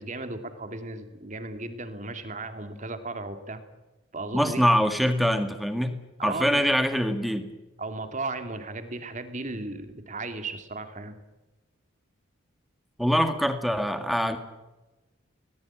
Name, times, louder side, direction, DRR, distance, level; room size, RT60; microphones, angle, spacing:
voice 1, 0.0-3.6 4.1-4.6 6.2-6.7 7.8-11.2, right 2 dB, 35° right, 8 dB, 2.5 m, -35 dB
voice 2, 4.3-7.5 13.0-14.4, equal, ahead, 7 dB, 1.9 m, -24 dB
21.5 x 20.0 x 9.0 m, 1.1 s
head